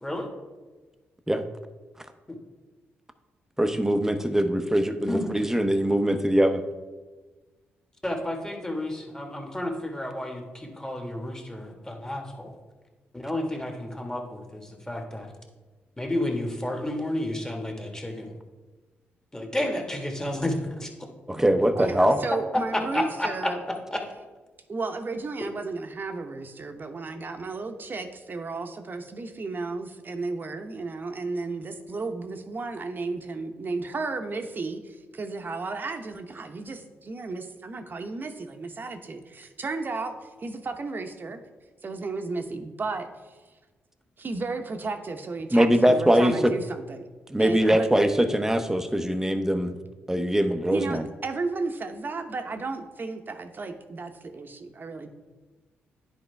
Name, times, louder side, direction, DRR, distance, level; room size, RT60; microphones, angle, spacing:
voice 1, 0.0-0.3 2.3-2.4 5.1-5.3 8.0-12.5 13.1-15.3 16.0-18.3 19.3-20.9 22.7-23.5 23.9-24.0, left 1 dB, 15° left, 2 dB, 1.7 m, -31 dB
voice 2, 3.6-6.6 21.3-22.2 45.5-46.5 47.3-49.8 50.1-51.0, equal, 10° right, 8 dB, 0.8 m, -22 dB
voice 3, 21.8-23.6 24.7-41.4 41.8-43.4 44.2-47.1 47.4-47.9 50.7-55.1, right 3 dB, 45° right, 6 dB, 0.9 m, -33 dB
10.0 x 4.4 x 3.4 m, 1.3 s
supercardioid pair, 50°, 5 cm